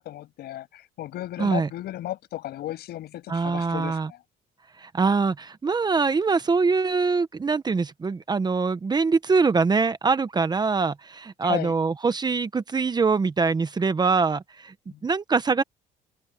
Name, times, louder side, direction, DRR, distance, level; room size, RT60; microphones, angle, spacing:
voice 1, 0.0-4.2 11.4-11.7 14.9-15.0, left 14 dB, 70° left, 6.8 m, -34 dB
voice 2, 3.3-4.1 4.8-14.7 15.0-15.6, right 4 dB, 25° right, 1.1 m, -23 dB
cardioid pair, 110°, 17 cm